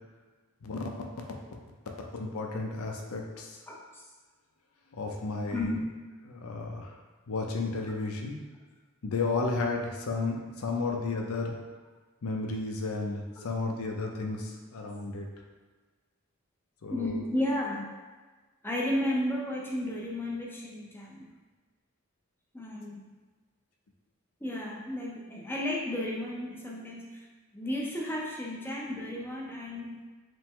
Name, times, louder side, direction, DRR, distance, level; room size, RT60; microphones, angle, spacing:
voice 1, 2.1-3.5 4.9-5.7 6.3-6.9 7.3-8.4 9.0-11.5 12.2-15.3 16.8-17.2, left 3 dB, 80° left, 1 dB, 0.6 m, -33 dB
voice 2, 3.7-4.0 5.5-5.8 13.4-13.5 16.9-17.9 18.6-21.3 22.5-23.1 24.4-27.2 27.5-30.0, left 1 dB, 10° left, -3 dB, 0.5 m, -33 dB
5.0 x 2.1 x 3.6 m, 1.4 s
head